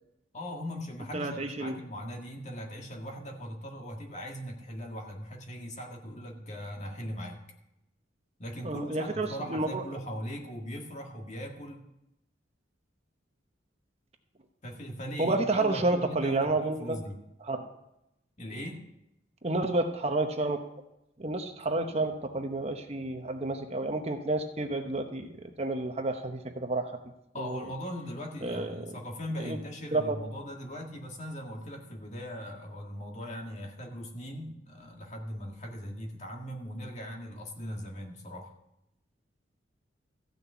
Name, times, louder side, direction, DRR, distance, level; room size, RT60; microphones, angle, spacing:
voice 1, 0.3-7.4 8.4-11.8 14.6-17.2 18.4-18.8 27.3-38.5, equal, 35° left, 1 dB, 1.9 m, -39 dB
voice 2, 1.1-1.8 8.6-9.8 15.2-17.0 17.4-17.7 19.4-20.6 21.2-25.3 25.6-27.0 27.4-27.6 28.4-28.7 29.4-29.6 29.9-30.2, right 2 dB, 35° right, 5 dB, 0.9 m, -30 dB
14.0 x 6.4 x 8.3 m, 0.86 s
head